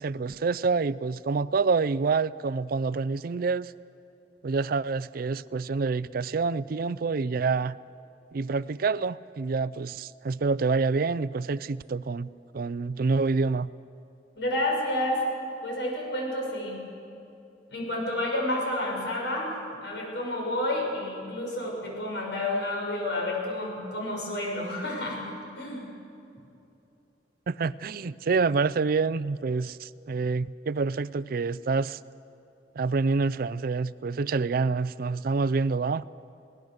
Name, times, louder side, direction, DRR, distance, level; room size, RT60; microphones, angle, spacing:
voice 1, 0.0-3.7 4.4-7.8 8.3-12.3 12.5-13.7 27.5-32.0 32.7-36.0, right 4 dB, 55° right, 18 dB, 0.4 m, -27 dB
voice 2, 14.4-15.2 15.6-16.8 17.7-19.5 19.8-25.9, left 1 dB, 80° left, -1 dB, 6.3 m, -30 dB
23.0 x 18.0 x 6.6 m, 2.7 s
head